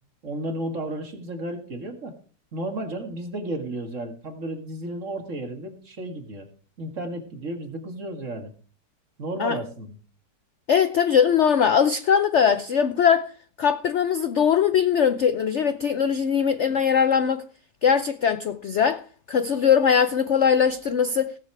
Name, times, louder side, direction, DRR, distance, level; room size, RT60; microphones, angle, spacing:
voice 1, 0.2-2.2 2.5-6.5 6.8-8.5 9.2-10.0, right 1 dB, 45° right, 2.3 m, -33 dB
voice 2, 10.7-13.3 13.6-17.4 17.8-21.3, left 7 dB, 65° left, 0.7 m, -21 dB
18.0 x 7.4 x 4.7 m
omnidirectional pair, 2.0 m